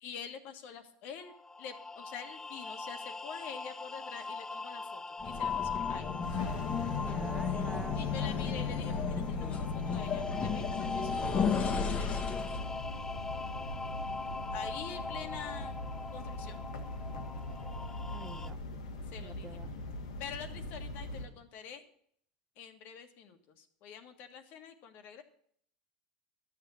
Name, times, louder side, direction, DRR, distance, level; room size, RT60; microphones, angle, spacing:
voice 1, 0.0-1.3 1.6-6.1 7.9-12.4 14.5-15.8 16.1-16.6 19.1-19.6 20.2-21.9 22.5-25.2, left 7 dB, 55° left, 7 dB, 1.7 m, -46 dB
sound 1, 1.2-18.5, left 3 dB, 15° left, 0.5 m, -42 dB
sound 2, 5.2-12.7, left 7 dB, 35° left, 1.4 m, -34 dB
sound 3, 6.2-21.3, left 1 dB, 90° left, 1.8 m, -41 dB
voice 2, 7.0-8.0 18.1-18.6 19.2-19.7, right 4 dB, 15° right, 13 dB, 0.8 m, -47 dB
12.0 x 7.1 x 7.1 m, 0.65 s
hypercardioid pair, 105°, 4 cm